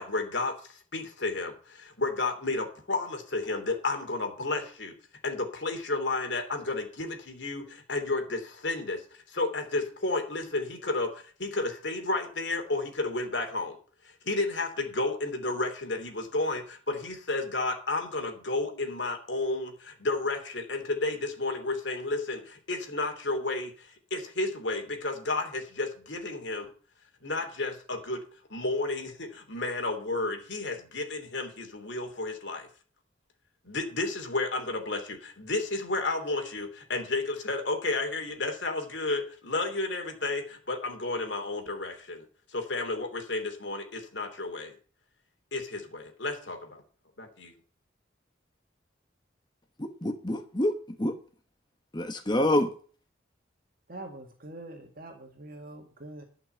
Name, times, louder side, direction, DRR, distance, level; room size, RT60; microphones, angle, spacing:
voice 1, 0.0-4.9 5.2-13.8 14.0-26.7 27.2-28.2 28.5-32.7 33.6-42.3 42.5-44.7 45.5-46.8 47.2-47.5, left 2 dB, 65° left, 3.0 m, -32 dB
voice 2, 49.8-51.1 51.9-52.7, left 1 dB, 20° left, 1.1 m, -27 dB
voice 3, 53.9-56.2, right 2 dB, 50° right, 1.9 m, -44 dB
11.5 x 6.0 x 7.9 m
head